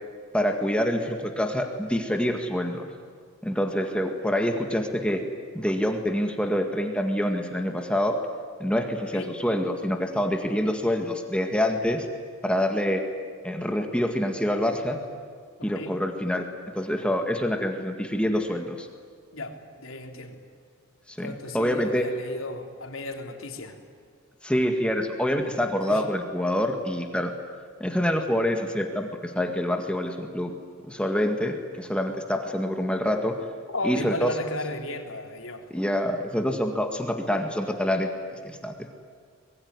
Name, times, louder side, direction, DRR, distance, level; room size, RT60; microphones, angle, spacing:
voice 1, 0.3-2.9 3.4-5.2 5.5-8.2 8.6-12.1 12.4-13.1 13.4-15.0 15.6-16.5 16.8-18.9 21.1-22.1 24.4-27.3 27.8-30.5 30.9-33.3 33.8-34.3 35.7-38.1 38.4-38.9, equal, 5° left, 4 dB, 1.9 m, -26 dB
voice 2, 15.6-16.0 19.3-20.4 21.2-23.8 25.9-26.1 33.7-35.7, left 2 dB, 85° left, 3 dB, 3.6 m, -35 dB
25.5 x 22.0 x 9.8 m, 2.1 s
head